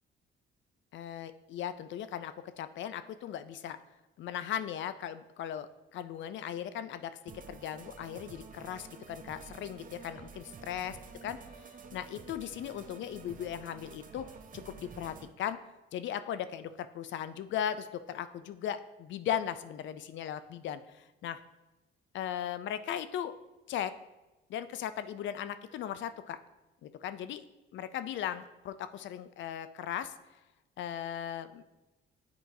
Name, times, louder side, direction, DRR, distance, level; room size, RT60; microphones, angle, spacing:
voice 1, 0.9-3.8 4.2-7.1 7.5-10.9 11.2-11.4 11.9-14.3 14.7-15.6 15.9-21.4 22.1-23.3 23.7-23.9 24.5-26.4 26.8-27.4 27.7-30.1 30.8-31.8, left 10 dB, 70° left, 12 dB, 0.4 m, -37 dB
sound 1, 7.3-15.3, right 5 dB, 45° right, 0.6 m, -50 dB
7.9 x 4.4 x 2.7 m, 1.1 s
cardioid pair, 90°, 20 cm